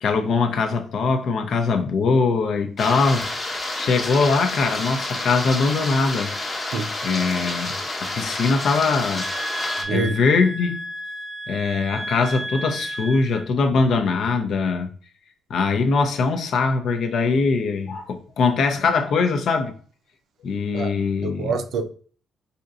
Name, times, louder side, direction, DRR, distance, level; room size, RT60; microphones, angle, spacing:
voice 1, 0.0-3.3 3.8-6.3 7.0-7.7 8.0-9.3 9.9-10.8 11.5-14.9 15.5-19.7 20.4-21.5, left 4 dB, 65° left, 0.6 m, -22 dB
sound 1, 2.8-9.8, left 2 dB, 30° left, 0.9 m, -29 dB
sound 2, 9.2-13.5, right 1 dB, ahead, 0.6 m, -33 dB
voice 2, 9.8-10.2 20.7-20.9 21.2-21.9, right 4 dB, 70° right, 0.5 m, -26 dB
4.3 x 2.7 x 2.4 m
cardioid pair, 90°, 0 cm